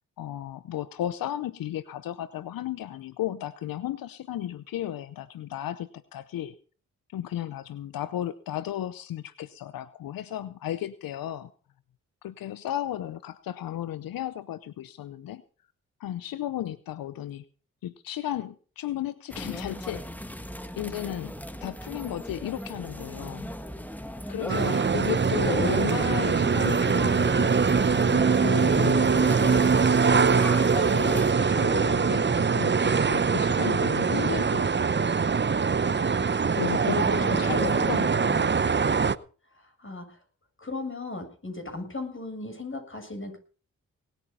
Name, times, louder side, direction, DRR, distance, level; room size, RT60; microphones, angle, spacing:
voice 1, 0.2-6.6 7.1-11.5 12.2-15.4 16.0-17.4 17.8-20.0 20.8-21.3 21.6-23.5 24.3-34.8 36.5-38.5, left 12 dB, 85° left, 15 dB, 0.7 m, -34 dB
sound 1, 19.3-31.3, equal, 5° left, 2.0 m, -39 dB
sound 2, 24.5-39.1, right 5 dB, 30° right, 0.8 m, -23 dB
voice 2, 24.6-24.9 25.4-25.8 37.0-38.0 39.5-40.2 40.6-43.4, left 2 dB, 35° left, 5 dB, 7.3 m, -36 dB
19.5 x 9.2 x 5.7 m, 0.40 s
supercardioid pair, 40°, 34 cm